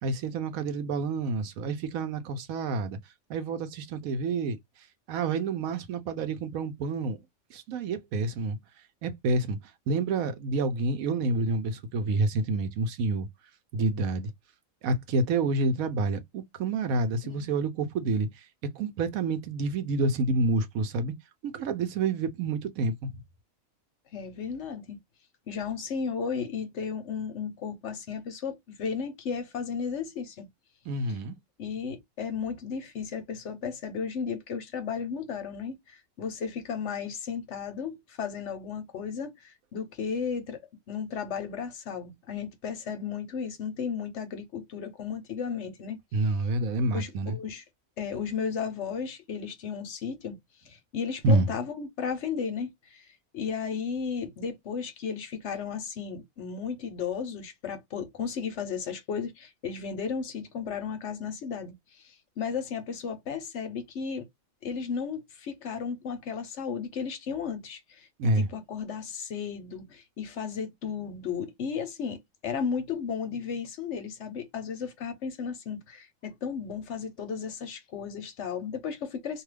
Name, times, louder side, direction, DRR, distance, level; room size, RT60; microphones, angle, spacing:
voice 1, 0.0-3.0 3.3-4.6 5.1-7.2 7.5-8.6 9.0-9.6 9.9-13.3 13.7-14.3 14.8-18.5 18.8-21.1 21.4-23.1 30.9-31.4 46.1-47.4 51.2-51.5 68.2-68.5, right 3 dB, 85° right, 1.1 m, -28 dB
voice 2, 24.1-25.0 25.5-30.5 31.6-40.6 40.9-46.0 46.9-47.6 48.0-50.4 50.7-53.1 53.3-64.3 64.6-79.4, left 6 dB, 60° left, 0.9 m, -34 dB
2.6 x 2.4 x 3.2 m
omnidirectional pair, 1.4 m